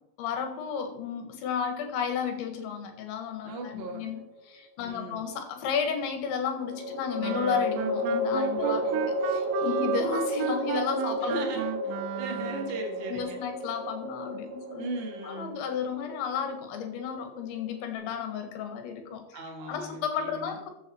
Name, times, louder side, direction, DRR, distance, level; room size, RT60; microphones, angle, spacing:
voice 1, 0.2-8.9 9.2-11.4 13.1-14.9 15.2-19.4 19.7-20.7, left 7 dB, 75° left, 6 dB, 4.0 m, -33 dB
voice 2, 3.4-4.1 4.8-5.2 8.6-9.1 11.2-11.9 12.2-13.4 14.7-15.6 19.1-20.6, right 2 dB, 45° right, 0 dB, 0.7 m, -38 dB
sound 1, 3.5-4.3 6.6-17.9, equal, 15° right, 5.2 m, -32 dB
Wind instrument woodwind instrument, 7.2-12.9, right 15 dB, 90° right, 3.0 m, -35 dB
14.0 x 7.9 x 4.5 m, 0.90 s
omnidirectional pair, 5.3 m